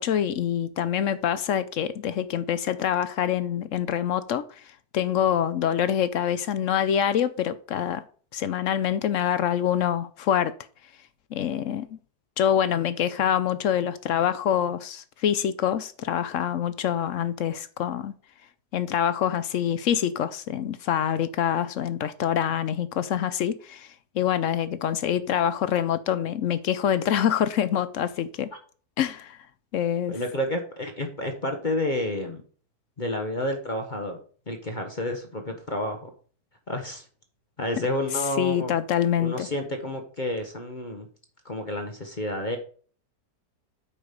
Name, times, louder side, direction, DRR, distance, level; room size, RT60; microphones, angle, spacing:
voice 1, 0.0-4.6 4.9-8.0 8.3-10.5 11.3-12.0 12.4-18.1 18.7-28.5 29.0-29.4 29.7-30.2 38.4-39.5, left 9 dB, 65° left, 0.8 m, -25 dB
voice 2, 30.1-32.4 33.0-34.2 34.5-36.1 36.7-37.0 37.6-38.7 39.2-41.1 41.4-42.6, left 1 dB, 30° left, 1.1 m, -30 dB
8.7 x 5.0 x 5.2 m
omnidirectional pair, 1.8 m